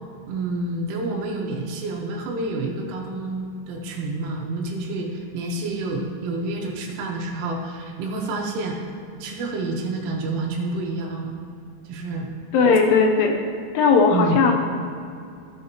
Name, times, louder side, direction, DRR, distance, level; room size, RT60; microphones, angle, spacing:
voice 1, 0.3-8.8 9.2-11.3 11.9-12.3 14.1-14.4, right 2 dB, 90° right, 0 dB, 3.7 m, -28 dB
voice 2, 12.5-13.4 13.7-14.5, left 4 dB, 75° left, 2 dB, 2.5 m, -17 dB
15.0 x 7.5 x 2.9 m, 2.4 s
omnidirectional pair, 5.4 m